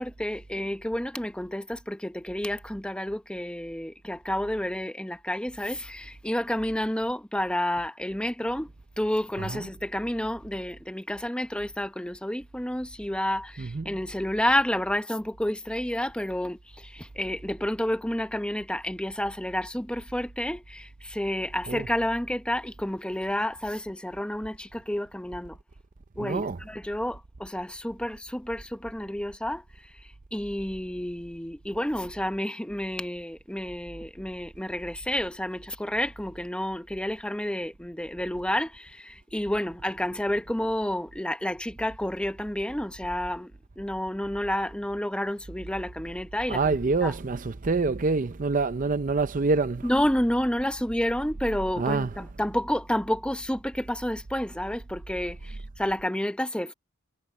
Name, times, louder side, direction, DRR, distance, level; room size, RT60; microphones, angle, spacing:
voice 1, 0.0-25.6 26.2-29.9 30.3-47.1 49.8-56.7, left 1 dB, 5° left, 1.0 m, -30 dB
voice 2, 13.6-13.9 21.7-21.9 26.2-26.6 46.5-49.9 51.8-52.1, right 3 dB, 40° right, 0.6 m, -26 dB
head